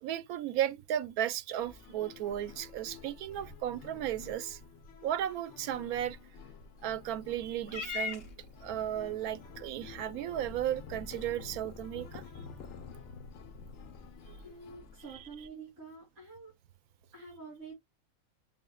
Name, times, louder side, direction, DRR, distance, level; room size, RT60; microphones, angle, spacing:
voice 1, 0.0-4.6 5.0-6.2 6.8-8.2 8.6-12.2, right 11 dB, 90° right, 1.1 m, -35 dB
sound 1, 1.6-15.5, left 6 dB, 60° left, 0.9 m, -52 dB
Purr / Meow, 7.7-14.2, left 6 dB, 45° left, 1.2 m, -45 dB
voice 2, 14.4-16.5 17.1-17.7, right 4 dB, 70° right, 3.5 m, -48 dB
6.9 x 2.5 x 2.2 m
omnidirectional pair, 1.5 m